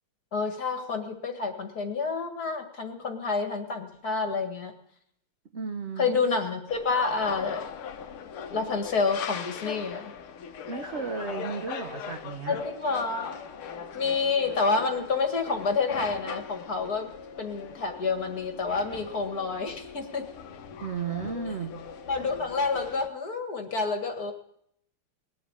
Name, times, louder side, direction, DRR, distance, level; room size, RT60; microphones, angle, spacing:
voice 1, 0.3-4.7 6.0-7.7 8.5-10.1 12.5-13.4 13.9-17.1 17.4-20.3 22.1-24.3, left 4 dB, 45° left, 4 dB, 2.3 m, -28 dB
voice 2, 5.5-6.1 10.7-12.6 20.8-21.8, right 5 dB, 45° right, 5 dB, 1.0 m, -34 dB
sound 1, 6.7-23.1, left 7 dB, 90° left, 2.0 m, -40 dB
20.0 x 7.9 x 9.0 m, 0.71 s
omnidirectional pair, 2.3 m